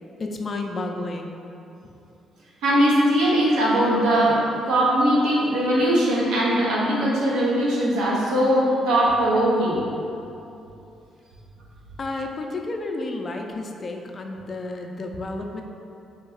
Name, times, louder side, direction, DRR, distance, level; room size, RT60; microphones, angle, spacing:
voice 1, 0.2-1.4 1.8-1.9 12.0-15.6, left 2 dB, 40° left, 3 dB, 0.4 m, -31 dB
voice 2, 2.6-4.4 4.6-9.8, right 1 dB, 90° right, -6 dB, 0.9 m, -20 dB
3.5 x 3.0 x 3.9 m, 2.7 s
cardioid pair, 90°, 0 cm